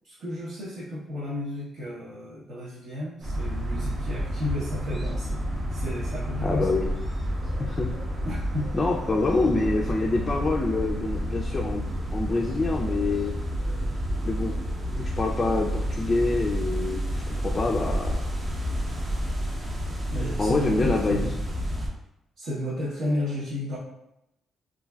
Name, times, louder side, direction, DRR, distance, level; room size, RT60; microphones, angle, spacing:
voice 1, 0.0-5.4 5.7-6.8 8.2-8.7 20.1-21.3 22.4-23.8, left 1 dB, 70° right, -8 dB, 0.8 m, -32 dB
sound 1, 3.2-21.9, equal, 30° right, 0.5 m, -30 dB
voice 2, 6.4-6.9 7.6-7.9 8.7-11.8 12.1-13.3 14.2-14.5 14.9-18.2 20.4-21.3, left 3 dB, 30° left, -1 dB, 0.3 m, -26 dB
3.2 x 2.5 x 2.3 m, 0.85 s
cardioid pair, 90°, 0 cm